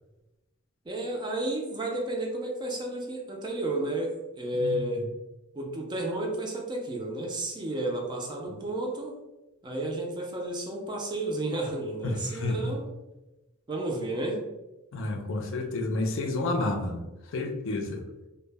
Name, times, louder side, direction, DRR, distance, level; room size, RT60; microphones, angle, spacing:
voice 1, 0.9-5.1 5.5-9.2 9.6-12.9 13.7-14.5, right 1 dB, 20° right, 1 dB, 0.4 m, -32 dB
voice 2, 12.0-12.6 14.9-17.0 17.3-18.0, left 2 dB, 65° left, 4 dB, 0.4 m, -30 dB
2.1 x 2.0 x 3.2 m, 1.0 s
head